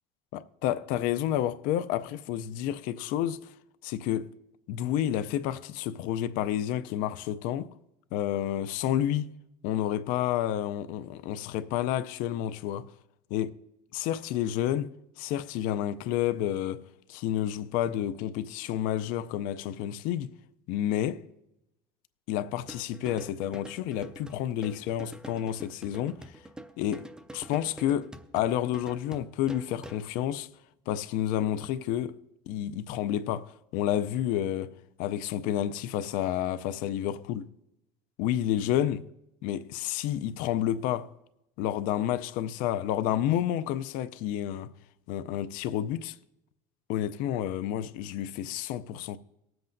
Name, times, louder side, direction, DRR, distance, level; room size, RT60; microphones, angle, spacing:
voice 1, 0.3-3.5 3.8-4.3 4.7-7.7 8.1-9.3 9.6-12.9 13.3-13.5 13.9-16.8 17.1-20.3 20.7-21.2 22.3-26.3 26.8-30.5 30.9-32.2 32.5-37.4 38.2-39.0 39.4-41.1 41.6-44.7 45.1-46.2 46.9-49.2, left 11 dB, 65° left, 0.5 m, -30 dB
sound 1, 22.6-30.2, right 1 dB, 5° right, 0.4 m, -46 dB
19.5 x 7.7 x 2.6 m
cardioid pair, 170°, 15 cm